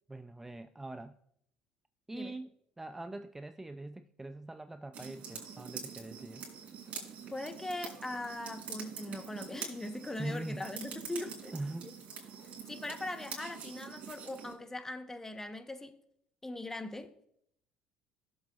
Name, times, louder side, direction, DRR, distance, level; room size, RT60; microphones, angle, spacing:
voice 1, 0.1-1.2 2.1-6.4 10.2-10.7 11.5-11.9 12.2-12.3, right 2 dB, 10° right, 0.4 m, -42 dB
sound 1, 4.9-14.5, right 6 dB, 50° right, 3.6 m, -45 dB
voice 2, 7.3-11.5 12.7-16.0 16.4-17.1, left 2 dB, 15° left, 1.1 m, -40 dB
16.0 x 7.3 x 2.4 m
supercardioid pair, 80°, 3 cm